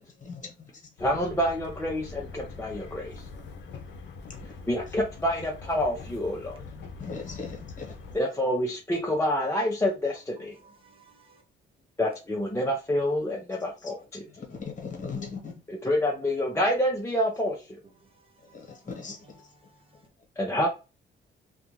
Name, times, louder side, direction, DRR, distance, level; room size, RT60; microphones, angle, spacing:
voice 1, 0.2-0.7 3.7-3.8 4.4-4.5 6.7-8.0 13.8-13.9 14.4-15.5 18.5-19.4, left 5 dB, 40° left, 1.2 m, -39 dB
sound 1, 1.0-8.2, left 4 dB, 65° left, 0.6 m, -43 dB
voice 2, 1.0-3.2 4.7-6.6 8.1-10.5 12.0-14.3 15.7-17.6 20.4-20.7, left 1 dB, 15° left, 0.6 m, -27 dB
voice 3, 10.4-11.3 13.6-13.7 18.1-18.9 19.3-19.8, right 3 dB, 25° right, 0.6 m, -59 dB
2.4 x 2.3 x 3.0 m
cardioid pair, 90°, 20 cm